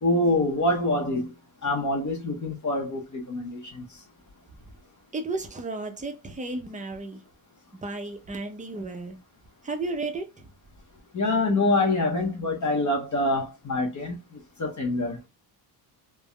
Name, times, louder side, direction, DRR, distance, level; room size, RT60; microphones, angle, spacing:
voice 1, 0.0-1.3 1.6-3.8 11.1-15.2, left 2 dB, 35° left, 0.8 m, -25 dB
voice 2, 5.1-7.2 7.7-9.2 9.6-10.5, right 3 dB, 15° right, 0.6 m, -33 dB
3.4 x 2.1 x 2.2 m
cardioid pair, 90°, 49 cm